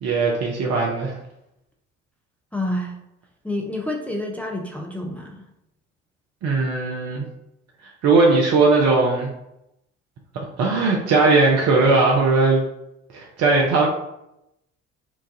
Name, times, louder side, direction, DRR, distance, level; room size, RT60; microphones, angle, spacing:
voice 1, 0.0-1.2 6.4-7.3 8.0-9.3 10.6-12.6 13.1-13.9, right 3 dB, 45° right, 0 dB, 0.6 m, -18 dB
voice 2, 2.5-3.0 3.4-5.4, left 1 dB, 5° left, 1 dB, 0.5 m, -28 dB
4.5 x 2.4 x 2.7 m, 0.85 s
figure-of-eight pair, 50°, 36 cm